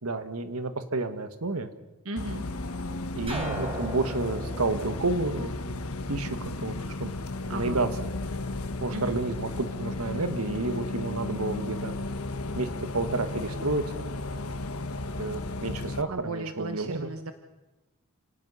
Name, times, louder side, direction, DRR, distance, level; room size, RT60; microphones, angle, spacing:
voice 1, 0.0-1.7 3.1-5.5 6.1-6.7 7.0-7.1 7.5-7.9 8.8-11.9 12.5-12.7 12.9-14.0 15.2-17.1, right 3 dB, 90° right, 9 dB, 1.7 m, -30 dB
voice 2, 2.0-2.5 7.5-7.9 8.9-9.2 16.1-17.3, right 2 dB, 70° right, 7 dB, 1.1 m, -35 dB
Bus, 2.2-16.0, left 2 dB, 90° left, 1.4 m, -34 dB
sound 1, 3.3-6.1, right 2 dB, 25° right, 4.9 m, -38 dB
29.5 x 18.0 x 5.8 m, 1.0 s
head